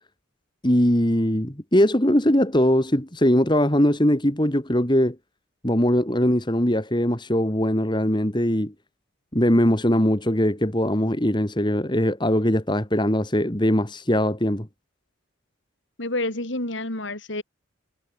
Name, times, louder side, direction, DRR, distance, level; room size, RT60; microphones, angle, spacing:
voice 1, 0.6-5.2 5.6-8.7 9.3-14.7, equal, 20° left, 2.7 m, -21 dB
voice 2, 16.0-17.4, left 2 dB, 65° left, 4.5 m, -28 dB
head